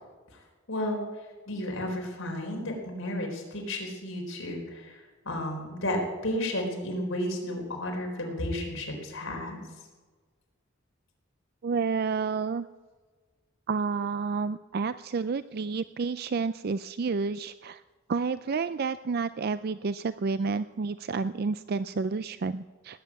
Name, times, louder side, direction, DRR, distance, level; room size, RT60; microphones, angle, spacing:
voice 1, 0.7-1.0 1.5-9.6, left 1 dB, 80° left, 2 dB, 4.1 m, -33 dB
voice 2, 11.6-12.7 13.7-17.8 18.1-23.0, right 4 dB, 50° right, 13 dB, 0.4 m, -30 dB
18.5 x 9.1 x 8.4 m, 1.4 s
head